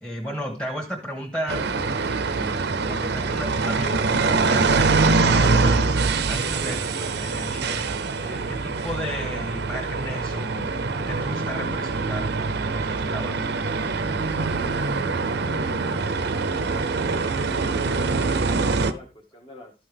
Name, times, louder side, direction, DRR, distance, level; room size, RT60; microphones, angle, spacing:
voice 1, 0.0-1.7 2.0-5.9 6.3-7.8 8.1-10.7 11.1-13.7, equal, 5° left, 0 dB, 1.3 m, -34 dB
sound 1, 1.5-18.9, right 4 dB, 60° right, 0.6 m, -24 dB
voice 2, 6.5-6.9 14.5-16.5 16.8-19.7, left 1 dB, 25° left, -2 dB, 1.2 m, -46 dB
13.0 x 5.6 x 3.4 m, 0.32 s
head